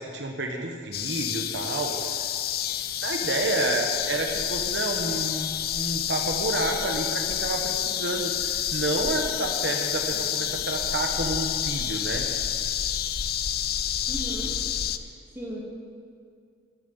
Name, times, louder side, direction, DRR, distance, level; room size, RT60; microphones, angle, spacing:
voice 1, 0.0-2.0 3.0-12.3, right 2 dB, 70° right, 2 dB, 1.3 m, -29 dB
sound 1, 0.9-15.0, left 10 dB, 55° left, 0.5 m, -29 dB
voice 2, 10.1-10.5 14.1-14.5 14.9-15.6, right 1 dB, 15° right, -4 dB, 2.8 m, -38 dB
13.5 x 7.8 x 9.4 m, 2.3 s
head